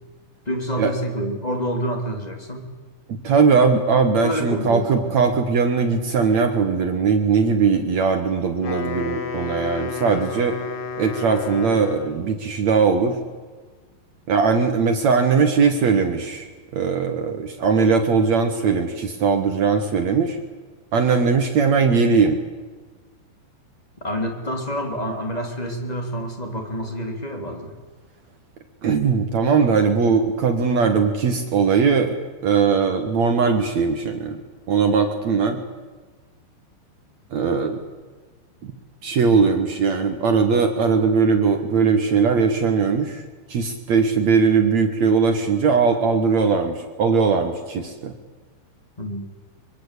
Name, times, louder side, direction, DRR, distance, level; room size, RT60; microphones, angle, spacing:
voice 1, 0.5-2.7 4.2-5.2 24.0-27.7 49.0-49.3, equal, 10° left, 4 dB, 2.0 m, -28 dB
voice 2, 3.2-10.6 11.0-13.2 14.3-16.5 16.7-20.4 20.9-22.4 28.8-32.2 32.4-34.4 34.7-35.6 37.3-37.8 39.0-43.2 43.5-48.1, right 5 dB, 60° right, 6 dB, 1.9 m, -19 dB
Wind instrument woodwind instrument, 8.5-12.3, left 5 dB, 55° left, 3.4 m, -32 dB
24.0 x 24.0 x 8.4 m, 1.4 s
omnidirectional pair, 5.4 m